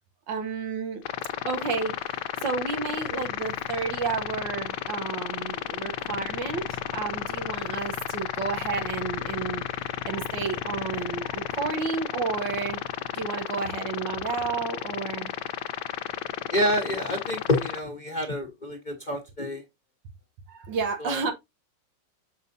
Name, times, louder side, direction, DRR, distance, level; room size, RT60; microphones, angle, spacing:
voice 1, 0.3-1.0 1.4-2.0 2.4-9.6 10.0-12.8 13.1-15.3 20.5-21.3, right 5 dB, 80° right, 1.6 m, -31 dB
sound 1, 1.1-17.8, left 11 dB, 80° left, 1.3 m, -33 dB
voice 2, 16.5-19.6 21.0-21.1, equal, 30° left, 1.0 m, -28 dB
6.7 x 5.6 x 2.6 m
omnidirectional pair, 2.0 m